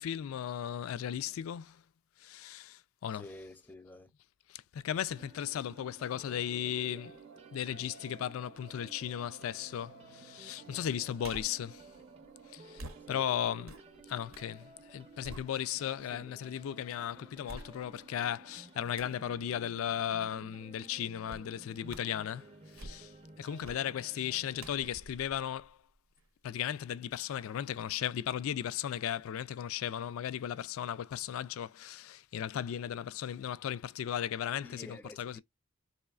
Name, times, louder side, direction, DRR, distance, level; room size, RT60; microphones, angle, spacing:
voice 1, 0.0-1.8 2.2-3.3 4.5-7.2 7.5-11.8 12.5-13.8 14.1-23.1 23.4-25.8 26.4-35.4, left 10 dB, 80° left, 0.3 m, -36 dB
voice 2, 3.1-4.1 13.1-13.2 16.1-16.5 34.6-35.4, left 1 dB, 10° left, 0.5 m, -50 dB
sound 1, 5.1-24.9, right 3 dB, 30° right, 0.7 m, -55 dB
sound 2, 6.3-13.6, right 5 dB, 65° right, 0.4 m, -56 dB
sound 3, 11.2-11.7 12.8-14.5 14.9-16.0 16.5-16.6 17.4-18.1 18.9-19.3 21.3-21.5 21.9-22.2 22.6-23.2 23.6-23.9 24.6-26.3 26.6-26.7, right 2 dB, 85° right, 0.8 m, -49 dB
4.2 x 3.0 x 2.3 m
head